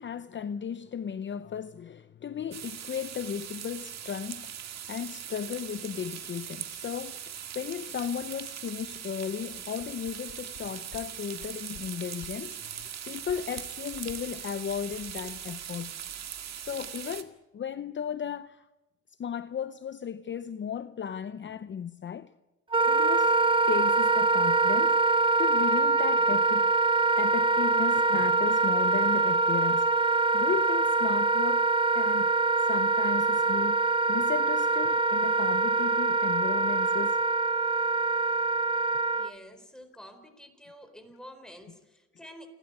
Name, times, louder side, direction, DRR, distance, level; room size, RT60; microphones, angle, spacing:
voice 1, 0.0-15.9 16.6-18.7 19.1-22.3 22.9-23.4 23.7-26.7 27.1-32.3 32.7-37.2, left 8 dB, 40° left, 0.7 m, -35 dB
sound 1, 2.5-17.2, right 9 dB, 60° right, 1.9 m, -40 dB
sound 2, 9.8-10.6 10.9-11.0 11.3-11.8 12.2-12.3 12.7-12.9 13.2-14.3 14.7-16.3 16.7-16.8, left 9 dB, 70° left, 2.1 m, -51 dB
Wind instrument woodwind instrument, 22.7-39.3, right 3 dB, 15° right, 0.7 m, -24 dB
voice 2, 39.1-42.5, equal, ahead, 4.3 m, -49 dB
29.5 x 12.0 x 9.7 m
cardioid pair, 90°, 30 cm